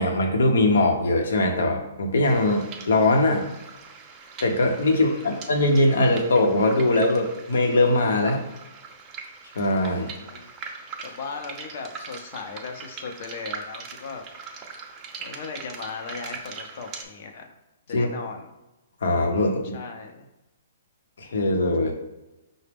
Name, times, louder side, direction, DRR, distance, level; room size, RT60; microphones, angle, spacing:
voice 1, 0.0-3.5 4.4-8.4 9.6-10.1 17.9-18.1 19.0-19.8 21.2-21.9, left 2 dB, 80° left, 3 dB, 0.8 m, -21 dB
sound 1, 2.2-17.0, right 5 dB, 20° right, 0.5 m, -41 dB
voice 2, 4.9-5.3 10.0-10.5 10.8-14.6 15.2-17.5 17.9-18.5 19.3-20.3, left 4 dB, 50° left, 4 dB, 0.6 m, -38 dB
4.9 x 2.1 x 3.4 m, 0.99 s
hypercardioid pair, 155°, 0 cm